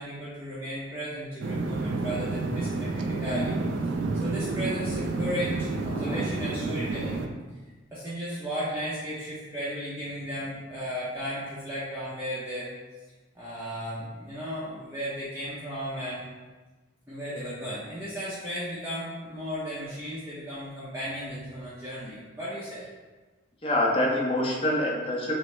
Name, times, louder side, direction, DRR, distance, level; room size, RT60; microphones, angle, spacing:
voice 1, 0.0-3.6 4.2-7.2 7.9-12.7 13.3-16.2 17.1-22.9, equal, 10° right, -10 dB, 0.7 m, -35 dB
sound 1, 1.4-7.3, right 3 dB, 65° right, 0.4 m, -30 dB
voice 2, 5.9-6.3 23.6-25.3, left 1 dB, 30° left, -3 dB, 0.7 m, -26 dB
5.9 x 2.0 x 3.2 m, 1.3 s
head